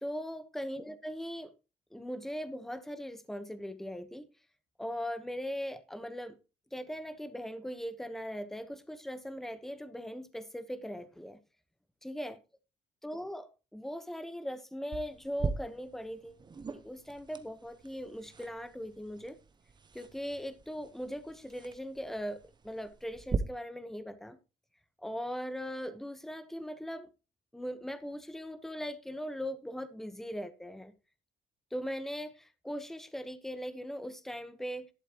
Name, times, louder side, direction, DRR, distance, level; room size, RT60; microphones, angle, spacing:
voice 1, 0.0-1.5 1.9-4.3 4.8-6.4 6.7-11.4 12.0-12.4 13.0-16.4 16.7-19.3 19.9-24.4 25.0-27.1 27.5-30.9 31.7-34.9, equal, ahead, 1.1 m, -40 dB
sound 1, 14.9-23.4, right 5 dB, 25° right, 1.0 m, -41 dB
11.5 x 11.5 x 3.0 m
cardioid pair, 110°, 17 cm